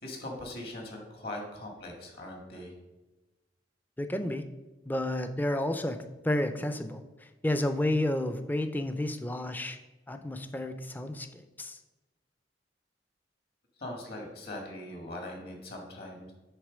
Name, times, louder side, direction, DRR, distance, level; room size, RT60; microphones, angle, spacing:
voice 1, 0.0-2.7 13.8-16.3, left 1 dB, 60° left, 1 dB, 1.9 m, -41 dB
voice 2, 4.0-4.5 4.9-6.0 6.2-9.8 10.1-11.8, left 1 dB, 10° left, 8 dB, 0.4 m, -31 dB
8.0 x 3.6 x 6.2 m, 1.1 s
head